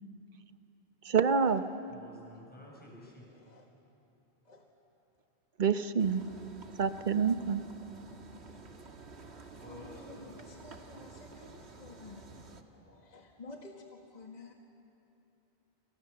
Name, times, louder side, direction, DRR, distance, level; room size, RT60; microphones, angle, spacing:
voice 1, 1.0-1.6 5.6-6.3 6.8-7.6, right 6 dB, 50° right, 10 dB, 1.1 m, -27 dB
voice 2, 1.9-3.2 9.6-10.5, left 1 dB, 10° left, -3 dB, 6.7 m, -51 dB
voice 3, 3.3-3.7 4.4-4.7 9.7-14.5, left 3 dB, 40° left, 1 dB, 1.8 m, -52 dB
sound 1, 6.0-12.6, right 3 dB, 80° right, 1.9 m, -51 dB
29.5 x 28.0 x 6.9 m, 2.8 s
omnidirectional pair, 1.1 m